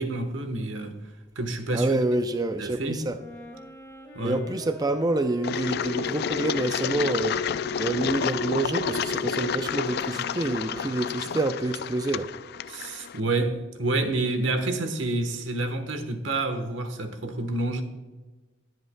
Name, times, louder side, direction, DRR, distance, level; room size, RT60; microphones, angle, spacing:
voice 1, 0.0-2.0 2.6-3.1 4.1-4.4 12.7-17.8, right 2 dB, 80° right, 1.2 m, -29 dB
voice 2, 1.7-3.1 4.2-7.4 7.8-12.3, right 2 dB, 20° right, 0.4 m, -27 dB
Wind instrument woodwind instrument, 3.0-11.4, left 2 dB, 15° left, 2.4 m, -43 dB
Engine, 5.4-13.2, left 7 dB, 55° left, 0.3 m, -30 dB
20.5 x 7.9 x 2.2 m
head